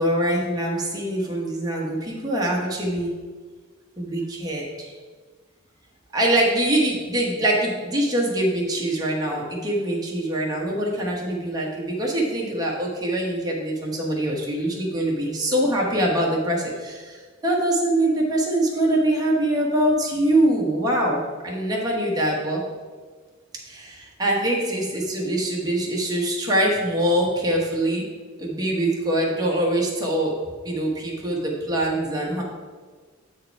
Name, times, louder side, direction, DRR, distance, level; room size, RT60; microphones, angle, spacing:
voice 1, 0.0-3.1 4.0-4.9 6.1-22.7 23.7-28.1 28.4-32.4, right 1 dB, 20° right, -3 dB, 1.2 m, -24 dB
7.7 x 4.8 x 4.6 m, 1.5 s
head